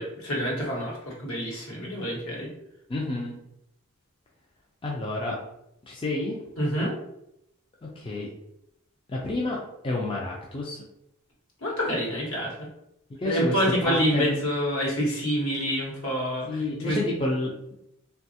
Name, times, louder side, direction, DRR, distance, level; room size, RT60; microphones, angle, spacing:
voice 1, 0.0-2.5 6.6-6.9 11.6-12.7 13.2-17.0, equal, 75° left, -3 dB, 1.1 m, -27 dB
voice 2, 2.9-3.4 4.8-5.4 5.9-6.4 7.8-8.3 9.1-9.6 9.8-10.8 13.2-13.5 13.8-14.3 16.5-17.7, left 2 dB, 25° left, -3 dB, 0.3 m, -29 dB
3.2 x 2.3 x 2.7 m, 0.81 s
head